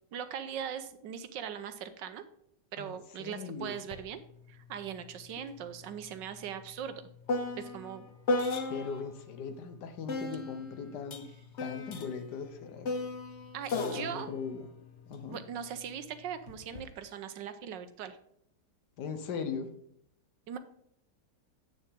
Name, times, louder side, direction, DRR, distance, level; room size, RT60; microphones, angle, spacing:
voice 1, 0.1-2.2 2.7-4.2 4.5-7.1 7.6-8.1 13.5-14.3 15.3-18.2 20.5-20.6, right 8 dB, 75° right, 10 dB, 1.4 m, -40 dB
voice 2, 2.8-3.9 8.7-11.3 11.6-12.9 13.7-14.6 15.1-15.4 19.0-19.7, left 5 dB, 65° left, 8 dB, 1.6 m, -39 dB
sound 1, 3.9-4.1 4.4-9.2 10.1-15.6 16.5-16.9, left 2 dB, 45° left, 1.0 m, -36 dB
8.5 x 7.0 x 3.7 m, 0.71 s
omnidirectional pair, 2.0 m